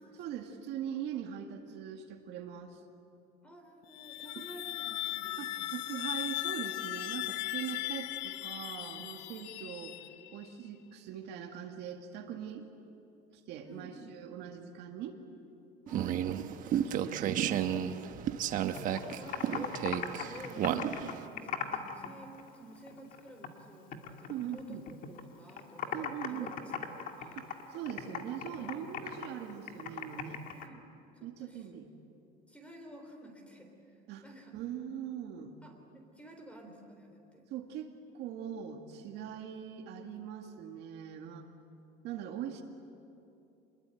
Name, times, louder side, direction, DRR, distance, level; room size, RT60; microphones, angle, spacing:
voice 1, 0.0-2.8 5.4-10.0 10.3-12.7 13.5-15.2 16.8-17.7 20.7-20.9 24.3-24.9 25.9-26.6 27.4-30.4 31.2-31.9 34.1-34.2 34.5-35.5 37.5-41.5 42.0-42.6, right 9 dB, 55° right, 3 dB, 2.1 m, -41 dB
voice 2, 3.4-5.8 13.6-14.1 15.9-16.6 18.9-26.0 26.3-27.4 30.5-30.8 31.1-31.7 32.5-34.5 35.6-37.5, right 1 dB, 5° left, 3 dB, 3.9 m, -51 dB
sound 1, 3.8-10.5, left 16 dB, 65° left, 0.9 m, -38 dB
sound 2, 15.9-21.3, right 10 dB, 40° right, 1.1 m, -33 dB
Computer keyboard, 18.5-22.1 22.4-23.6 23.9-25.2 25.5-30.7, left 8 dB, 40° left, 2.0 m, -39 dB
27.0 x 21.5 x 9.2 m, 2.7 s
cardioid pair, 155°, 20 cm